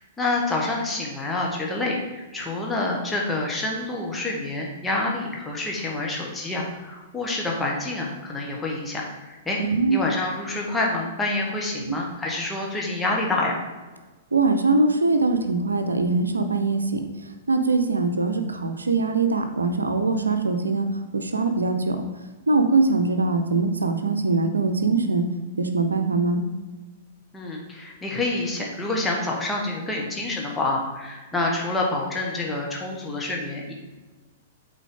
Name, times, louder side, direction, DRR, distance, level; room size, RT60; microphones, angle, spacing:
voice 1, 0.2-9.6 9.9-13.6 27.3-33.7, left 2 dB, 10° left, -2 dB, 1.3 m, -27 dB
voice 2, 9.6-10.0 11.8-12.0 14.3-17.0 17.5-20.9 21.1-22.0 22.5-25.2 25.6-26.4, right 3 dB, 80° right, 7 dB, 0.7 m, -22 dB
8.1 x 4.2 x 3.8 m, 1.2 s
figure-of-eight pair, 105°, 0 cm